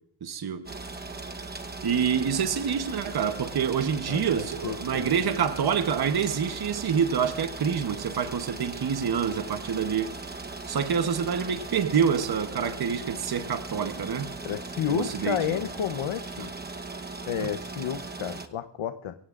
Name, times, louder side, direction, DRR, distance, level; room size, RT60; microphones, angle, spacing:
voice 1, 0.2-0.6 1.8-10.1 10.7-14.3 14.9-15.4, right 7 dB, 50° right, 1.0 m, -27 dB
sound 1, 0.7-18.5, right 3 dB, 20° right, 1.0 m, -39 dB
voice 2, 4.1-5.1 14.4-16.5 17.3-19.1, left 9 dB, 70° left, 0.9 m, -31 dB
23.5 x 17.5 x 2.5 m
wide cardioid pair, 170°, 50 cm